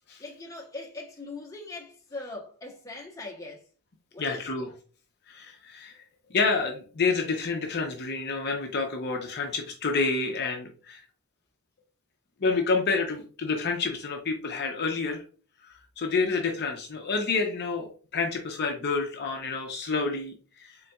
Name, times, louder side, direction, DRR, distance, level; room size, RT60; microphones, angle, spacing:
voice 1, 0.2-3.6 4.1-4.7, left 2 dB, 15° left, 0.9 m, -41 dB
voice 2, 4.2-4.7 5.3-6.0 6.3-11.0 12.4-15.2 15.6-20.8, left 4 dB, 45° left, 0.6 m, -29 dB
4.0 x 3.8 x 2.2 m
head